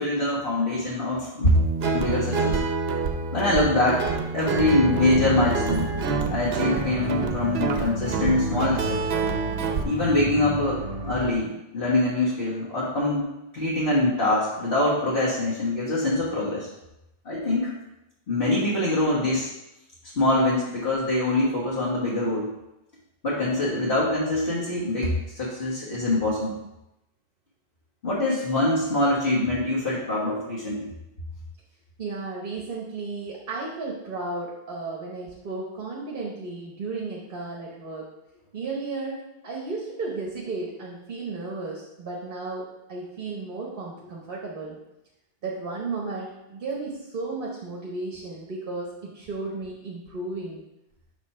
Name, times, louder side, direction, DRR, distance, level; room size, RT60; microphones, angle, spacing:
voice 1, 0.0-1.6 1.9-2.6 3.3-5.9 6.3-9.1 9.8-13.2 13.5-16.7 17.2-17.7 18.3-19.5 20.1-22.5 23.2-26.6 28.0-30.9, left 2 dB, 70° left, -8 dB, 1.6 m, -24 dB
Guitar, 1.5-9.8, right 4 dB, 75° right, 0.9 m, -27 dB
sound 1, 4.4-11.3, right 3 dB, 40° right, 0.8 m, -33 dB
voice 2, 32.0-38.1 38.5-44.8 45.4-50.6, right 3 dB, 60° right, -3 dB, 1.2 m, -34 dB
7.2 x 3.1 x 5.6 m, 0.91 s
omnidirectional pair, 1.0 m